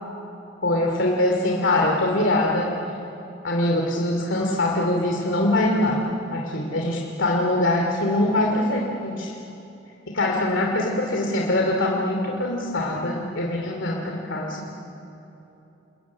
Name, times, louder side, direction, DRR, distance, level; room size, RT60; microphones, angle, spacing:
voice 1, 0.6-2.7 3.4-9.3 10.1-14.7, left 1 dB, 75° left, 0 dB, 2.8 m, -23 dB
28.5 x 21.0 x 9.7 m, 3.0 s
head